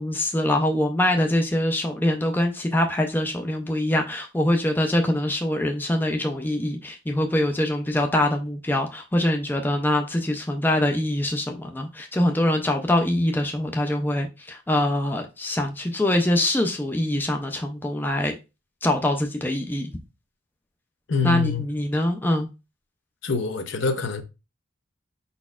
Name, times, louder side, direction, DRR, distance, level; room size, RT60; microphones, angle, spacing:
voice 1, 0.0-18.3 18.8-19.9 21.2-22.5, left 1 dB, 10° left, 0.4 m, -24 dB
voice 2, 21.1-21.6 23.2-24.2, left 5 dB, 60° left, 0.6 m, -25 dB
5.2 x 4.1 x 2.3 m
head